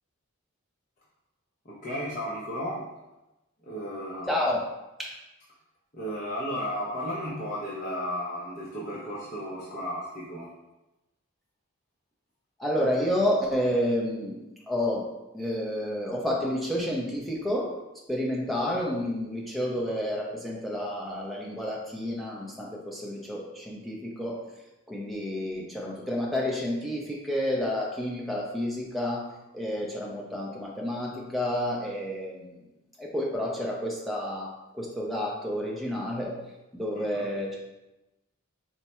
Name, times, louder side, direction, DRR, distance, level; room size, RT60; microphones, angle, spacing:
voice 1, 1.6-3.0 3.6-4.3 5.9-10.5 36.9-37.3, equal, 40° left, -7 dB, 0.7 m, -34 dB
voice 2, 4.3-4.6 5.0-5.2 12.6-17.8 18.1-24.5 24.9-32.5 33.0-36.4 36.7-37.6, left 1 dB, ahead, -4 dB, 0.4 m, -30 dB
4.5 x 2.1 x 4.2 m, 0.98 s
head